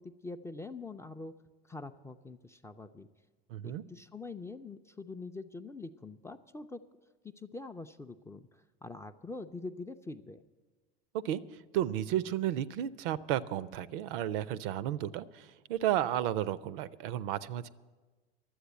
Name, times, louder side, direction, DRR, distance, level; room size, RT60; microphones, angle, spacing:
voice 1, 0.0-1.3 1.6-3.1 3.6-6.8 7.2-10.4, left 3 dB, 10° left, 7 dB, 0.4 m, -44 dB
voice 2, 3.5-3.8 11.2-11.4 11.7-17.7, right 12 dB, 60° right, 19 dB, 0.5 m, -33 dB
11.5 x 8.0 x 9.2 m, 1.3 s
hypercardioid pair, 80°, 31 cm